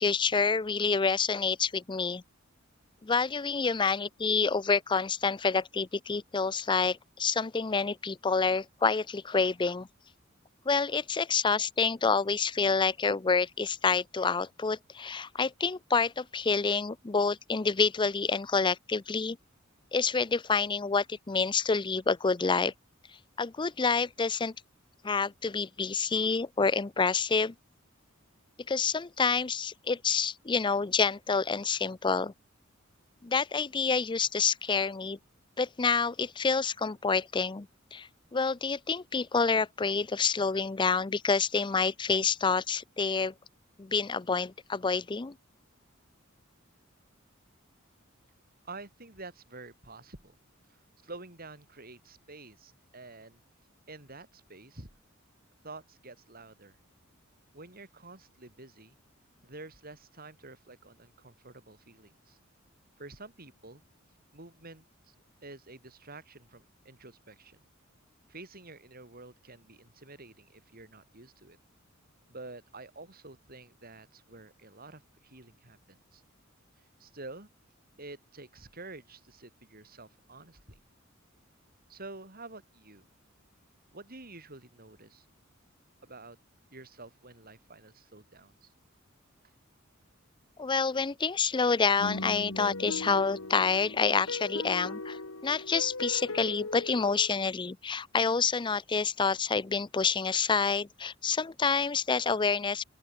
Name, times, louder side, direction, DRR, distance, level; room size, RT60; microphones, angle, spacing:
voice 1, 0.0-2.2 3.0-9.9 10.7-19.4 19.9-22.7 23.1-24.5 25.0-27.5 28.7-32.3 33.2-35.2 35.6-37.7 37.9-43.3 43.8-45.3 90.6-102.8, left 5 dB, 25° left, 0.5 m, -28 dB
voice 2, 48.6-50.3 50.7-53.4 53.9-54.9 55.6-56.8 57.5-59.0 59.4-62.4 63.0-63.8 64.3-65.1 65.4-67.6 68.3-71.6 72.3-76.2 77.0-77.5 78.0-80.8 81.9-83.1 83.9-85.3 86.0-86.4 86.7-88.7, right 2 dB, 45° right, 7.2 m, -49 dB
sound 1, 92.0-97.3, left 2 dB, 80° left, 2.3 m, -38 dB
open air
head